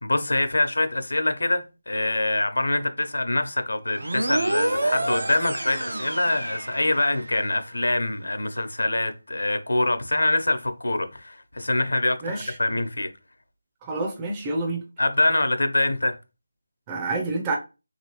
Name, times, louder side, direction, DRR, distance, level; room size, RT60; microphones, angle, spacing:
voice 1, 0.0-13.1 15.0-16.1, left 2 dB, 90° left, 0.8 m, -24 dB
sound 1, 4.0-7.5, right 1 dB, 85° right, 0.8 m, -28 dB
voice 2, 12.2-12.5 13.8-14.8 16.9-17.5, right 2 dB, 10° right, 0.4 m, -28 dB
3.1 x 2.9 x 2.9 m
figure-of-eight pair, 175°, 0 cm